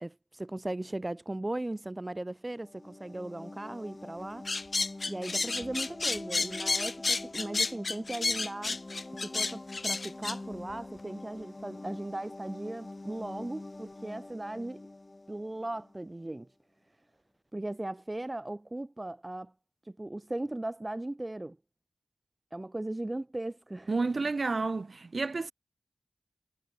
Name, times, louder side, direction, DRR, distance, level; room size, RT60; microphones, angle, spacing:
voice 1, 0.0-4.5 5.1-8.8 9.2-14.8 15.3-16.5 17.5-19.5 19.8-21.6 22.5-23.9, right 1 dB, 20° right, 0.5 m, -38 dB
sound 1, 2.5-16.1, left 2 dB, 30° left, 1.1 m, -45 dB
sound 2, 4.5-10.4, left 3 dB, 45° left, 1.5 m, -31 dB
voice 2, 23.9-25.5, right 3 dB, 50° right, 1.5 m, -30 dB
wide cardioid pair, 80°, 0 cm